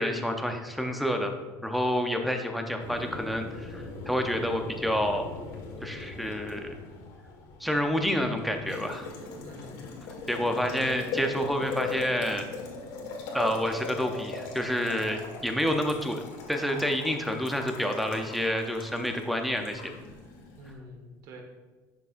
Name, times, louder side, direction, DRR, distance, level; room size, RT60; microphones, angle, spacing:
voice 1, 0.0-1.3 1.6-5.3 5.8-6.7 7.6-9.1 10.3-12.5 13.3-16.2 16.5-19.8, equal, ahead, 3 dB, 0.5 m, -28 dB
Boiling, 2.8-20.7, left 4 dB, 80° left, 1.6 m, -40 dB
voice 2, 9.4-10.0 10.6-10.9 20.6-21.4, equal, 50° right, 3 dB, 1.3 m, -46 dB
10.5 x 6.8 x 2.5 m, 1.3 s
cardioid pair, 180°, 7 cm